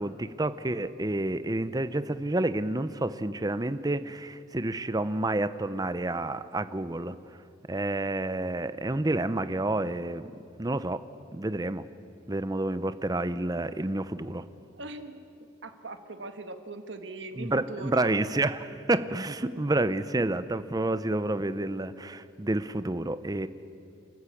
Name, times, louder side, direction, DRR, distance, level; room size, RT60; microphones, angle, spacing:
voice 1, 0.0-7.2 7.7-10.3 10.6-11.0 11.3-11.9 12.3-14.4 17.4-23.5, right 2 dB, 20° right, 13 dB, 0.7 m, -29 dB
voice 2, 14.7-15.3 15.6-18.2, right 2 dB, 65° right, 7 dB, 1.5 m, -40 dB
28.0 x 14.5 x 8.5 m, 2.5 s
head